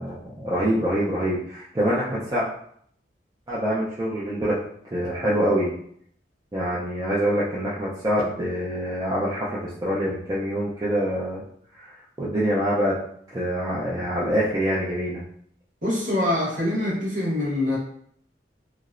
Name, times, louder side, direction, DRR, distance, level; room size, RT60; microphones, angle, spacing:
voice 1, 0.0-2.5 3.5-4.6 4.9-5.7 6.5-11.4 11.8-13.0 13.3-15.2, equal, 20° right, -9 dB, 0.4 m, -25 dB
voice 2, 15.8-17.8, left 1 dB, 45° right, -4 dB, 0.9 m, -24 dB
2.8 x 2.0 x 2.4 m, 0.64 s
head